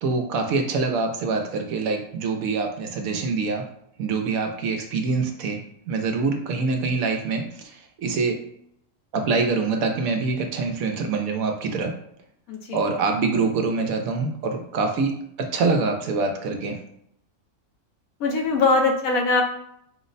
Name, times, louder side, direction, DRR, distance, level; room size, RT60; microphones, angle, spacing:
voice 1, 0.0-3.6 4.0-5.6 5.9-8.3 9.1-11.9 12.7-16.8, right 4 dB, 80° right, 4 dB, 1.1 m, -25 dB
voice 2, 12.5-12.9 18.2-19.4, left 3 dB, 80° left, 2 dB, 1.2 m, -21 dB
4.6 x 2.1 x 3.9 m, 0.71 s
omnidirectional pair, 1.5 m